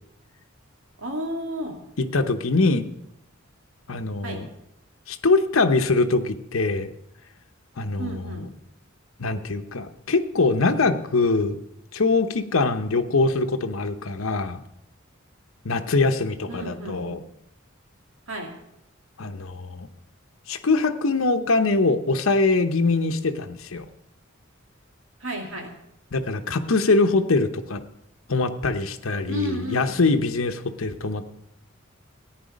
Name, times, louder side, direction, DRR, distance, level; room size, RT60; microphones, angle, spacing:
voice 1, 1.0-1.8 4.2-4.5 8.0-8.5 16.5-17.2 18.3-18.5 25.2-25.7 29.3-29.9, right 1 dB, 75° right, 2 dB, 2.4 m, -32 dB
voice 2, 2.0-2.9 3.9-4.5 5.1-6.9 7.8-8.5 9.2-11.6 11.9-14.6 15.6-17.2 19.2-19.9 20.5-23.9 26.1-27.8 28.3-31.2, left 3 dB, 85° left, 7 dB, 0.9 m, -23 dB
14.5 x 9.7 x 5.2 m, 0.84 s
head